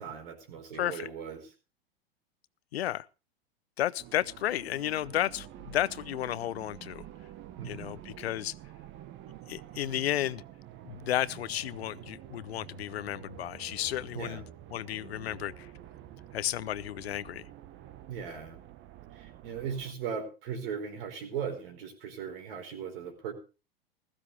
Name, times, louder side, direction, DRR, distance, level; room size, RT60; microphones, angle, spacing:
voice 1, 0.0-1.5 7.6-8.0 14.1-14.4 18.1-18.6 19.1-23.3, right 7 dB, 65° right, 4.5 m, -38 dB
voice 2, 2.7-3.1 3.8-7.1 7.6-8.5 9.5-10.4 10.8-14.4 14.7-15.7 16.3-17.4, left 12 dB, 80° left, 0.7 m, -32 dB
sound 1, 4.0-19.9, right 12 dB, 40° right, 1.1 m, -48 dB
15.5 x 14.5 x 3.3 m
hypercardioid pair, 105°, 31 cm